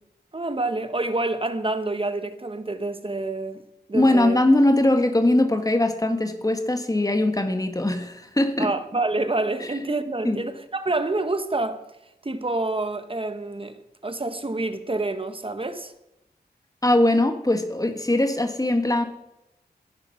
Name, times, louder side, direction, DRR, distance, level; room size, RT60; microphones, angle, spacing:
voice 1, 0.3-3.6 3.9-4.4 8.6-11.8 12.2-13.8 14.0-15.9, right 2 dB, 30° right, 1.2 m, -27 dB
voice 2, 3.9-8.7 10.2-10.4 16.8-19.0, left 1 dB, 20° left, 1.7 m, -21 dB
16.0 x 10.5 x 5.9 m
wide cardioid pair, 100°, 17 cm